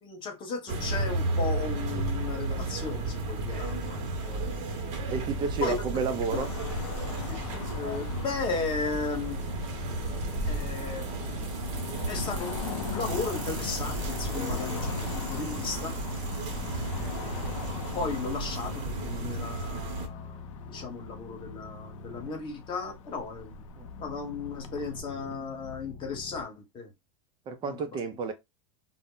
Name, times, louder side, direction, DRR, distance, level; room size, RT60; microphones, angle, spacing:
voice 1, 0.0-4.5 5.6-6.0 6.3-6.4 7.3-7.4 7.7-9.4 10.4-11.1 12.0-15.9 17.9-23.5 24.0-26.9 27.6-28.0, left 4 dB, 30° left, 1.0 m, -35 dB
sound 1, 0.7-20.1, right 2 dB, 45° right, 0.8 m, -33 dB
voice 2, 5.1-6.5 23.8-23.9 27.5-28.3, right 5 dB, 30° right, 0.4 m, -31 dB
Car passing by / Traffic noise roadway noise / Engine, 6.3-25.0, left 7 dB, 85° left, 0.4 m, -41 dB
sound 2, 8.6-26.4, left 3 dB, 50° left, 0.8 m, -46 dB
2.0 x 2.0 x 3.7 m
supercardioid pair, 120°, 16 cm